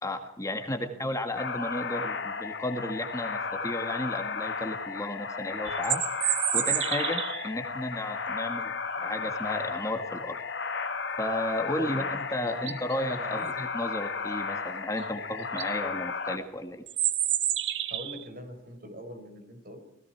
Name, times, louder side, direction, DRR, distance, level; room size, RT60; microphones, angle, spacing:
voice 1, 0.0-6.0 6.5-8.7 9.0-10.4 11.2-16.8, left 1 dB, 20° left, 6 dB, 1.8 m, -33 dB
voice 2, 0.6-1.0 11.8-12.8 13.2-13.5 17.9-19.8, equal, 55° right, 6 dB, 5.1 m, -44 dB
sound 1, 1.4-16.4, left 5 dB, 75° left, 2.2 m, -34 dB
sound 2, 5.6-7.5 12.0-12.1 12.5-12.9 15.0-15.1 15.4-15.7 16.9-18.2, right 11 dB, 70° right, 1.2 m, -29 dB
30.0 x 20.5 x 4.7 m, 0.80 s
head